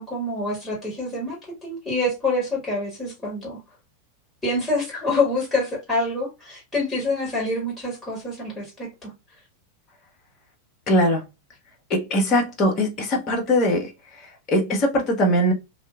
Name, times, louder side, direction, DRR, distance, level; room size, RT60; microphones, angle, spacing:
voice 1, 0.0-3.6 4.4-9.1, left 2 dB, 10° left, 1.4 m, -26 dB
voice 2, 10.9-11.2 11.9-15.5, equal, 35° left, 0.9 m, -21 dB
2.7 x 2.4 x 2.3 m
figure-of-eight pair, 90°, 0 cm